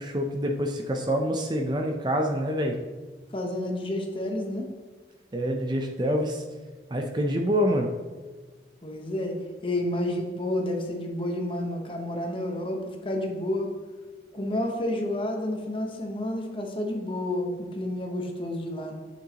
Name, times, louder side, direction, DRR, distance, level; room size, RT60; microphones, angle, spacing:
voice 1, 0.0-2.8 5.3-6.4 6.9-7.9, equal, 25° right, 3 dB, 0.5 m, -26 dB
voice 2, 3.3-4.7 8.8-9.3 9.6-13.7 14.3-18.9, left 1 dB, 30° left, 2 dB, 0.9 m, -30 dB
9.8 x 6.2 x 2.9 m, 1.4 s
head